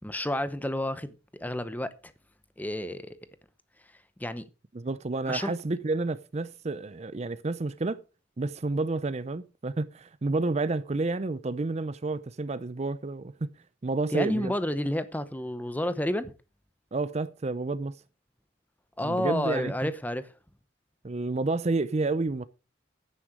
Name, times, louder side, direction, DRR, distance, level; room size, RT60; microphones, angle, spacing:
voice 1, 0.0-1.9 2.6-3.2 4.2-4.4 5.2-5.5 14.1-16.3 19.0-20.3, left 1 dB, 10° left, 0.7 m, -30 dB
voice 2, 4.7-8.0 8.4-13.5 13.8-14.5 16.9-18.0 19.0-19.9 21.0-22.5, right 3 dB, 35° right, 0.5 m, -30 dB
9.8 x 9.3 x 4.9 m
head